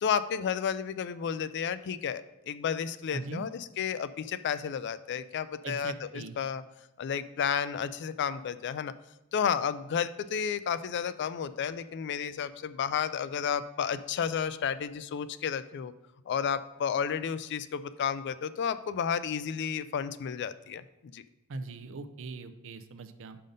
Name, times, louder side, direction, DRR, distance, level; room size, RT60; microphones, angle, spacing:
voice 1, 0.0-6.6 7.0-8.9 9.3-15.9 16.3-21.2, left 7 dB, 55° left, 14 dB, 0.3 m, -32 dB
voice 2, 3.1-3.5 5.6-6.4 21.5-23.4, right 3 dB, 60° right, 11 dB, 0.5 m, -40 dB
5.6 x 5.3 x 5.2 m, 0.94 s
head